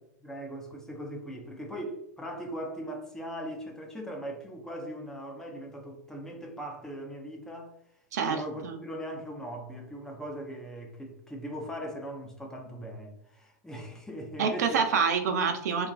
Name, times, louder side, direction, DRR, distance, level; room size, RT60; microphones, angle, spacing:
voice 1, 0.2-7.7 8.2-14.9, equal, 5° left, 0.6 m, -39 dB
voice 2, 8.1-8.8 14.4-15.9, right 6 dB, 70° right, 0.5 m, -27 dB
2.9 x 2.3 x 2.4 m
hypercardioid pair, 105°, 9 cm